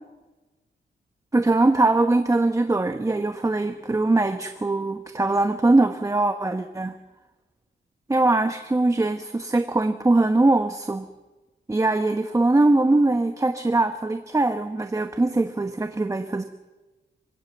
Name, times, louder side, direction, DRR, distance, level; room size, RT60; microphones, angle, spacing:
voice 1, 1.3-6.9 8.1-11.1 11.7-16.4, right 2 dB, 15° right, 7 dB, 1.0 m, -21 dB
26.5 x 16.0 x 8.2 m, 1.2 s
wide cardioid pair, 125°, 19 cm